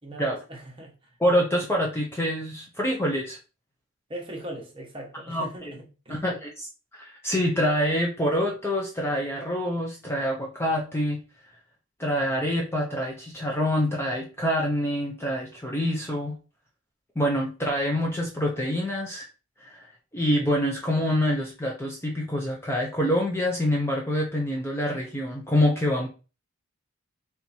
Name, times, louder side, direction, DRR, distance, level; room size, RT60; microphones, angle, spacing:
voice 1, 0.0-1.1 4.1-6.2, right 1 dB, 25° right, 1.1 m, -40 dB
voice 2, 1.2-3.4 5.3-5.7 6.1-6.7 6.9-11.2 12.0-16.4 17.2-19.3 19.6-19.9 20.1-26.1, equal, 10° left, 0.5 m, -26 dB
3.4 x 2.8 x 4.2 m
head